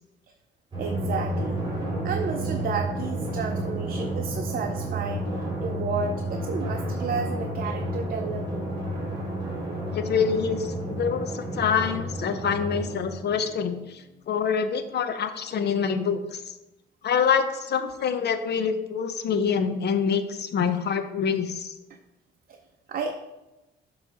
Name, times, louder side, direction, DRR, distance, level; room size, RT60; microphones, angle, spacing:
Drum, 0.7-13.8, right 1 dB, 25° right, 2.2 m, -31 dB
voice 1, 0.8-1.6 2.0-5.2 5.6-8.7 22.5-22.6 22.9-23.1, right 5 dB, 50° right, 4 dB, 0.6 m, -32 dB
voice 2, 9.9-16.5 17.0-21.7, left 6 dB, 55° left, 9 dB, 0.7 m, -26 dB
7.4 x 3.1 x 5.4 m, 1.0 s
cardioid pair, 90°, 20 cm